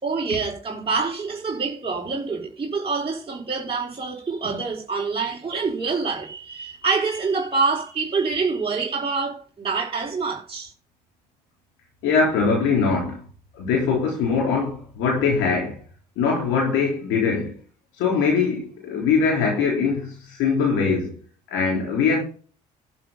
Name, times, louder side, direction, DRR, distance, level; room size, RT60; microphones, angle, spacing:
voice 1, 0.0-10.7, right 4 dB, 25° right, 4.2 m, -26 dB
voice 2, 12.0-13.2 13.6-15.8 16.2-17.5 18.0-21.2 21.5-22.2, left 5 dB, 70° left, 3.7 m, -22 dB
12.0 x 7.1 x 5.7 m
hypercardioid pair, 50°, 21 cm